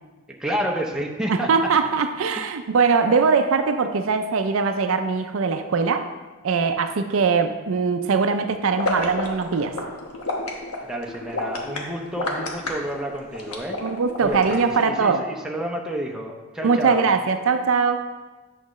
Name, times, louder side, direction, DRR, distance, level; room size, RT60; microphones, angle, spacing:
voice 1, 0.4-1.7 2.4-2.5 10.8-13.8 14.2-17.1, right 1 dB, 5° right, -1 dB, 0.6 m, -30 dB
voice 2, 1.3-6.1 6.4-9.7 13.8-15.2 16.6-18.1, right 5 dB, 65° right, 8 dB, 0.4 m, -21 dB
sound 1, 8.8-14.9, left 2 dB, 80° left, 1.1 m, -29 dB
8.6 x 6.3 x 3.1 m, 1.3 s
head